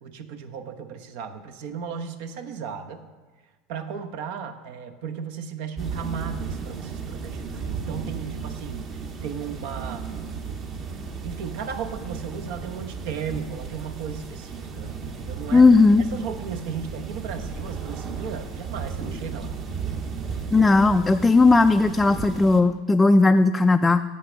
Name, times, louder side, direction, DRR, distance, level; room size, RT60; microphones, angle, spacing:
voice 1, 0.0-3.1 3.7-8.9 9.2-10.3 11.2-15.7 16.0-19.5 20.4-20.7, right 7 dB, 70° right, 7 dB, 0.9 m, -35 dB
sound 1, 5.8-22.6, right 5 dB, 45° right, 1.4 m, -34 dB
voice 2, 15.5-16.0 20.5-24.0, left 3 dB, 15° left, 6 dB, 0.3 m, -17 dB
8.4 x 6.7 x 6.2 m, 1.3 s
supercardioid pair, 110°, 0 cm